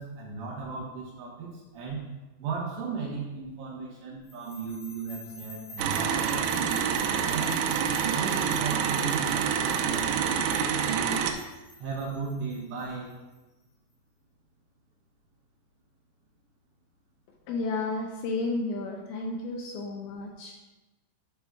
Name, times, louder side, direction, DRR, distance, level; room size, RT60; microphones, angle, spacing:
voice 1, 0.0-2.1 2.4-6.8 7.3-7.6 8.0-11.2 11.8-13.1, right 5 dB, 75° right, -3 dB, 2.8 m, -36 dB
sound 1, 4.3-13.3, left 1 dB, 60° left, 3.7 m, -48 dB
sound 2, 5.8-11.3, right 7 dB, 90° right, 3.2 m, -27 dB
voice 2, 17.5-20.5, left 3 dB, 80° left, 1 dB, 2.7 m, -32 dB
11.5 x 5.9 x 2.3 m, 1.1 s
omnidirectional pair, 5.6 m